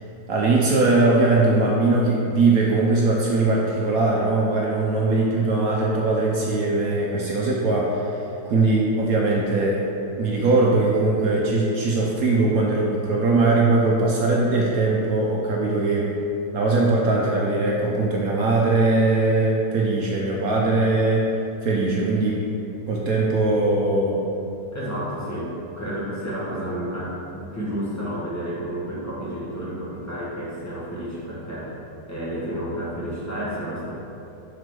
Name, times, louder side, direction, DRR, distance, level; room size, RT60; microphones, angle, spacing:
voice 1, 0.3-9.8 10.2-16.1 16.5-21.3 21.6-22.5 22.9-24.2, right 2 dB, 65° right, -2 dB, 1.1 m, -20 dB
voice 2, 24.7-31.8 32.1-33.9, equal, 10° left, -8 dB, 1.3 m, -31 dB
6.1 x 5.9 x 3.7 m, 2.8 s
omnidirectional pair, 1.8 m